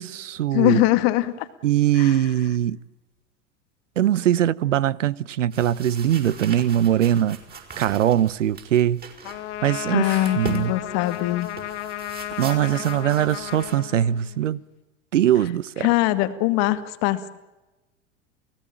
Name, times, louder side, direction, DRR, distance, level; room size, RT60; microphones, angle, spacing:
voice 1, 0.0-0.8 1.6-2.8 4.0-7.4 7.8-9.0 9.6-10.7 12.4-14.6 15.1-15.9, right 11 dB, 90° right, 0.9 m, -21 dB
voice 2, 0.5-1.5 2.0-2.2 9.9-11.5 15.8-17.4, left 17 dB, 60° left, 2.3 m, -22 dB
sound 1, 5.5-13.8, right 5 dB, 25° right, 5.9 m, -41 dB
Trumpet, 9.2-14.5, left 12 dB, 75° left, 2.7 m, -34 dB
29.5 x 17.5 x 9.0 m
hypercardioid pair, 95°, 36 cm